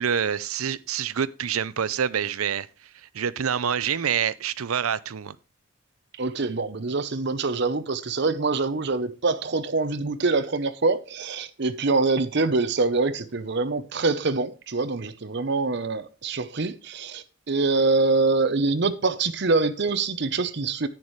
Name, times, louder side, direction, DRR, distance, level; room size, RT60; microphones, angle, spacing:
voice 1, 0.0-2.7 3.0-5.4, right 8 dB, 85° right, 0.6 m, -26 dB
voice 2, 6.2-20.9, right 3 dB, 55° right, 0.7 m, -25 dB
10.5 x 8.9 x 3.1 m
head